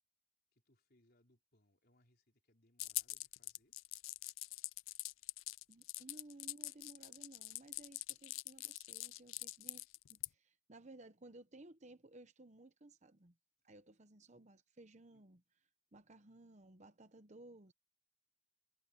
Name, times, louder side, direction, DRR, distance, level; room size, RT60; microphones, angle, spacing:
voice 1, 0.5-3.8 15.1-15.2, left 1 dB, 50° left, 4.3 m, -74 dB
sound 1, 2.8-10.3, left 19 dB, 80° left, 0.4 m, -44 dB
voice 2, 5.7-13.3 13.6-15.4 15.9-17.7, right 2 dB, 35° right, 1.0 m, -58 dB
head